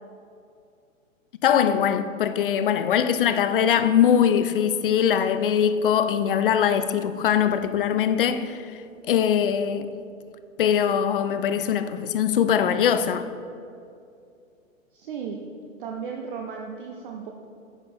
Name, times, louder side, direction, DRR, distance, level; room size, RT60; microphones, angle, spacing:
voice 1, 1.4-8.6 9.1-9.9 10.6-13.3, left 8 dB, 45° left, 0.5 m, -22 dB
voice 2, 14.9-15.4 15.8-17.3, right 6 dB, 40° right, 0.7 m, -35 dB
9.1 x 5.1 x 5.0 m
figure-of-eight pair, 115°, 40 cm